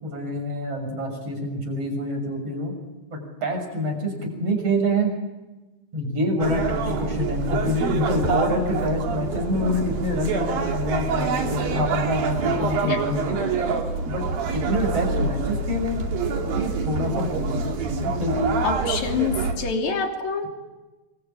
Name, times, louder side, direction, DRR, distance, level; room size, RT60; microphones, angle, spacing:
voice 1, 0.0-2.7 3.1-5.1 5.9-13.4 14.1-14.2 14.5-16.1 16.4-18.6, equal, 40° right, 3 dB, 7.5 m, -26 dB
sound 1, 6.4-19.5, right 4 dB, 65° right, 4.3 m, -26 dB
voice 2, 18.6-20.5, left 5 dB, 50° left, 2 dB, 4.2 m, -26 dB
27.0 x 24.0 x 8.9 m, 1.1 s
omnidirectional pair, 4.5 m